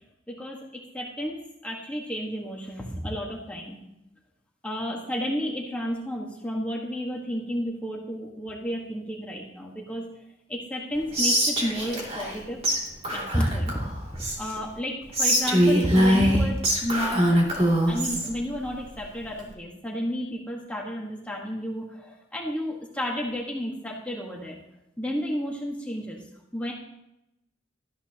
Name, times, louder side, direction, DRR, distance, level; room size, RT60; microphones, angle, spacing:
voice 1, 0.3-0.6 0.9-3.8 4.6-10.0 10.5-12.6 13.1-13.9 14.4-17.2 17.9-24.6 25.0-26.2 26.5-26.7, equal, 5° left, -2 dB, 1.4 m, -31 dB
Whispering, 11.1-12.4 12.6-12.8 13.0-14.6 15.1-18.3, equal, 30° right, 2.6 m, -23 dB
17.5 x 13.5 x 2.9 m, 0.89 s
head